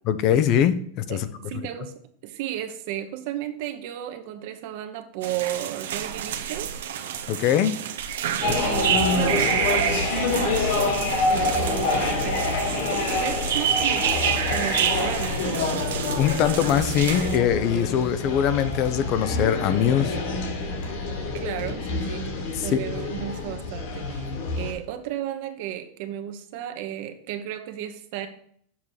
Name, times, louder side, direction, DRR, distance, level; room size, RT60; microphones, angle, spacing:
voice 1, 0.1-0.8 1.1-1.3 7.3-7.8 8.5-8.6 16.2-20.2 22.6-22.8, left 9 dB, 40° left, 13 dB, 0.7 m, -22 dB
voice 2, 1.1-6.7 8.4-14.1 14.5-15.9 21.3-22.3 22.6-24.3 24.6-28.3, right 11 dB, 55° right, 7 dB, 1.1 m, -34 dB
sound 1, 5.2-17.4, right 9 dB, 90° right, 0.9 m, -28 dB
sound 2, 8.4-24.7, left 3 dB, 65° left, 2.7 m, -27 dB
7.3 x 5.7 x 4.8 m, 0.62 s
supercardioid pair, 155°, 0 cm